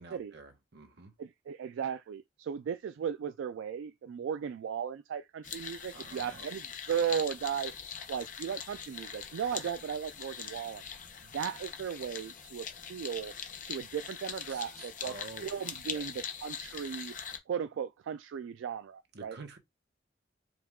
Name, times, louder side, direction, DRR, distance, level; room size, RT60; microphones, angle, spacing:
voice 1, 0.0-1.1 5.9-6.5 14.5-15.5 15.9-16.1 19.1-19.6, right 3 dB, 60° right, 0.9 m, -49 dB
voice 2, 1.2-7.7 8.1-10.8 11.3-13.3 13.6-15.1 15.4-17.1 17.5-19.4, right 8 dB, 80° right, 0.3 m, -36 dB
sound 1, 5.4-17.4, left 7 dB, 45° left, 0.7 m, -42 dB
4.7 x 2.3 x 3.6 m
head